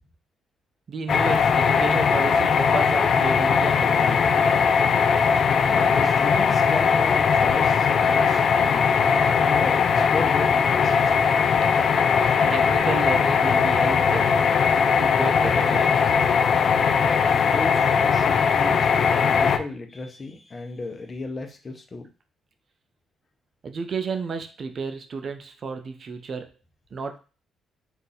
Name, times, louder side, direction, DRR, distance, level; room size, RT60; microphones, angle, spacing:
voice 1, 0.9-4.4 12.5-14.4 15.0-16.1 23.6-26.5 26.9-27.2, right 5 dB, 50° right, 6 dB, 0.5 m, -32 dB
sound 1, 1.1-19.6, left 6 dB, 55° left, 0.3 m, -20 dB
voice 2, 5.6-8.9 9.4-11.1 17.0-22.1, left 2 dB, 35° left, 4 dB, 0.7 m, -35 dB
2.6 x 2.5 x 3.9 m, 0.34 s
cardioid pair, 90°, 0 cm